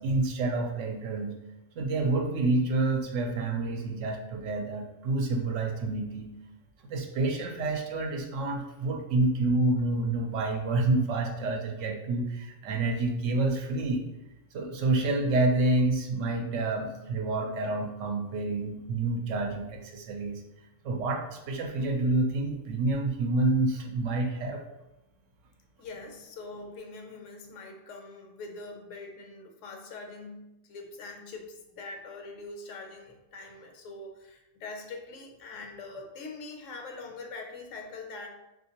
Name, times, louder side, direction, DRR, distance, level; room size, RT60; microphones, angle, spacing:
voice 1, 0.0-1.3 1.8-6.3 6.8-14.0 14.5-20.4 20.8-24.6, right 2 dB, 75° right, 2 dB, 0.9 m, -28 dB
voice 2, 25.8-38.3, left 3 dB, 75° left, 3 dB, 1.0 m, -43 dB
3.5 x 2.5 x 2.8 m, 0.95 s
omnidirectional pair, 1.3 m